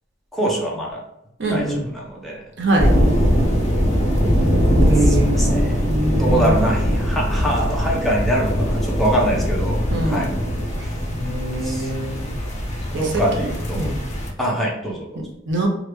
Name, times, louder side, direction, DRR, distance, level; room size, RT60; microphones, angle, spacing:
voice 1, 0.3-1.0 1.5-2.4 5.0-10.3 10.8-10.9 11.6-11.9 12.9-13.9 14.4-15.3, right 1 dB, ahead, -3 dB, 0.7 m, -24 dB
voice 2, 1.4-1.9 2.6-2.9 4.9-6.5 9.9-10.3 10.8-12.3 12.9-13.2 13.8-14.0 15.5-15.7, right 1 dB, 65° right, 0 dB, 0.8 m, -23 dB
sound 1, 2.8-14.3, equal, 35° left, 0.6 m, -21 dB
3.1 x 2.4 x 3.2 m, 0.82 s
head